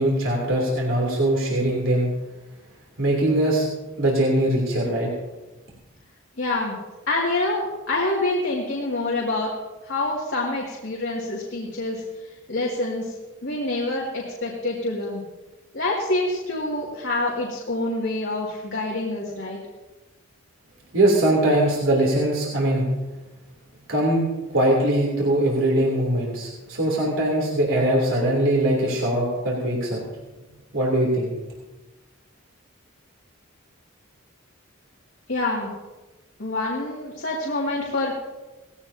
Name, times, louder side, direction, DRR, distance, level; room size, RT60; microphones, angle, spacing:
voice 1, 0.0-2.1 3.0-3.7 4.0-5.1 20.9-22.9 23.9-24.2 24.5-30.0 30.7-31.3, right 1 dB, 70° right, -2 dB, 3.2 m, -21 dB
voice 2, 6.4-6.8 7.1-9.5 9.8-12.0 12.5-13.1 13.4-15.2 15.7-19.6 35.3-35.7 36.4-38.1, left 2 dB, 55° left, -4 dB, 2.4 m, -26 dB
18.5 x 16.0 x 2.8 m, 1.1 s
head